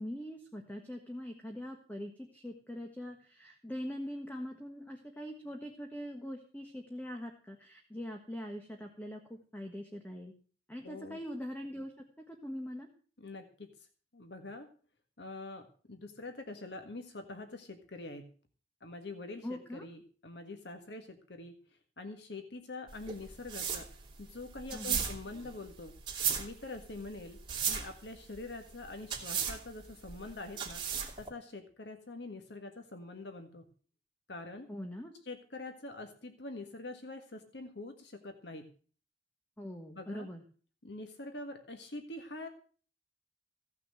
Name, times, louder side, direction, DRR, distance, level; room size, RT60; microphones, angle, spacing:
voice 1, 0.0-10.3 10.7-11.9 12.3-12.9 19.4-19.8 24.7-25.0 34.7-35.1 39.6-40.4, equal, 10° left, 3 dB, 1.5 m, -42 dB
voice 2, 10.8-11.2 13.2-13.7 14.1-14.7 15.2-18.3 18.8-21.6 22.0-23.9 24.2-26.0 26.3-27.4 27.7-30.8 31.2-33.7 34.3-34.7 35.2-38.7 39.9-40.3 40.8-42.5, left 2 dB, 75° left, 6 dB, 1.7 m, -45 dB
sound 1, 22.9-31.3, right 7 dB, 25° right, 2.9 m, -36 dB
16.0 x 6.1 x 7.6 m, 0.42 s
head